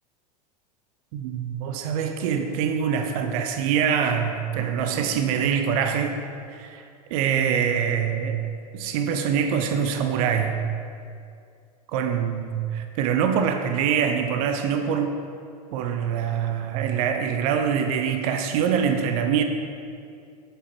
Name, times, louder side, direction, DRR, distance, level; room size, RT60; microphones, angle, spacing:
voice 1, 1.1-6.1 6.5-6.8 7.1-8.4 8.7-10.6 11.9-15.2 15.7-19.4, right 7 dB, 60° right, 6 dB, 0.7 m, -24 dB
7.1 x 7.0 x 4.4 m, 2.4 s
hypercardioid pair, 100°, 20 cm